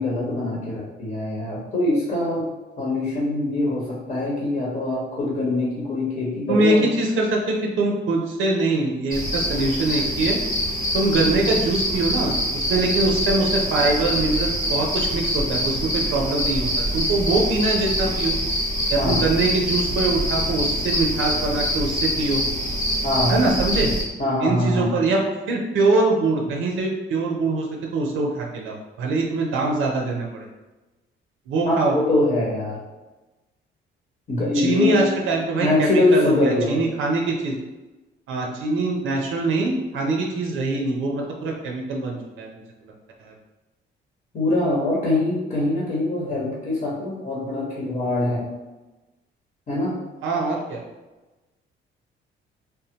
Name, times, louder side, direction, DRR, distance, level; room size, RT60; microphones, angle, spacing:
voice 1, 0.0-2.4 2.8-6.8 19.0-19.2 23.0-23.4 24.2-25.0 31.7-32.8 34.3-35.0 35.6-36.8 44.3-48.5 49.7-49.9, left 2 dB, 45° left, -5 dB, 1.1 m, -23 dB
voice 2, 6.5-10.4 10.9-18.3 18.9-22.4 23.3-23.9 24.4-25.2 25.5-27.7 27.9-30.5 31.5-31.9 34.5-37.5 38.3-42.5 43.3-43.4 50.2-50.8, right 3 dB, 80° right, 0 dB, 0.5 m, -23 dB
sound 1, 9.1-24.0, equal, 15° left, 1.0 m, -25 dB
3.4 x 2.1 x 2.8 m, 1.1 s
cardioid pair, 90°, 20 cm